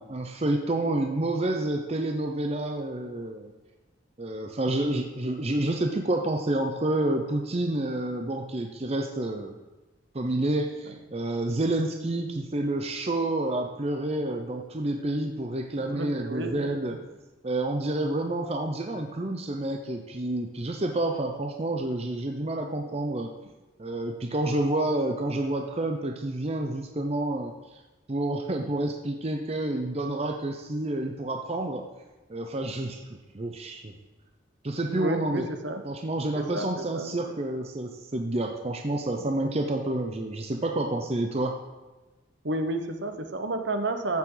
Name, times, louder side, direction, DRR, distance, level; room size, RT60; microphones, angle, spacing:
voice 1, 0.0-3.5 4.2-9.6 10.1-17.0 17.4-23.3 23.8-27.8 28.1-31.8 32.3-33.0 33.3-33.9 34.6-35.5 35.8-41.6, right 1 dB, 30° right, 3 dB, 0.7 m, -29 dB
voice 2, 15.8-16.7 22.8-23.0 34.9-35.8 36.3-37.4 38.5-38.6 38.9-39.5 42.4-44.2, right 2 dB, 60° right, 6 dB, 1.0 m, -32 dB
14.5 x 7.4 x 3.9 m, 1.1 s
head